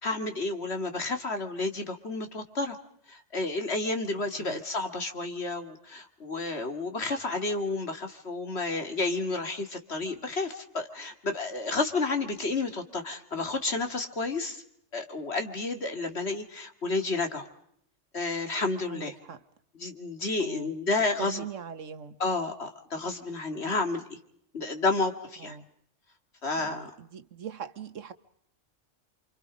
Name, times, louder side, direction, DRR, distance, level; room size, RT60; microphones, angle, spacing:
voice 1, 0.0-2.8 3.1-14.6 14.9-17.5 18.1-19.1 19.8-21.4 22.2-24.2 24.5-25.6 26.4-26.9, left 3 dB, 55° left, 2.4 m, -31 dB
voice 2, 18.9-19.4 20.4-20.7 21.2-22.2 25.4-25.7 26.6-28.1, right 7 dB, 75° right, 1.5 m, -41 dB
29.0 x 26.0 x 5.1 m
omnidirectional pair, 1.3 m